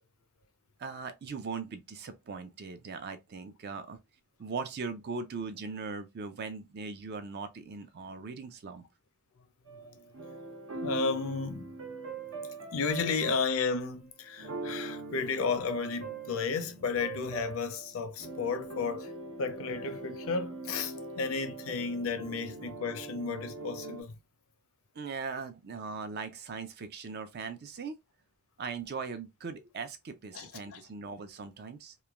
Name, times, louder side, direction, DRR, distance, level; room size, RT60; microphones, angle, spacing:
voice 1, 0.8-4.0 4.4-8.9 24.9-28.0 28.6-31.9, right 4 dB, 45° right, 0.4 m, -39 dB
sound 1, 9.7-24.0, right 3 dB, 70° right, 0.8 m, -42 dB
voice 2, 10.8-11.7 12.7-19.1 19.4-24.1 30.3-30.8, left 5 dB, 65° left, 0.5 m, -33 dB
3.1 x 2.2 x 2.3 m
head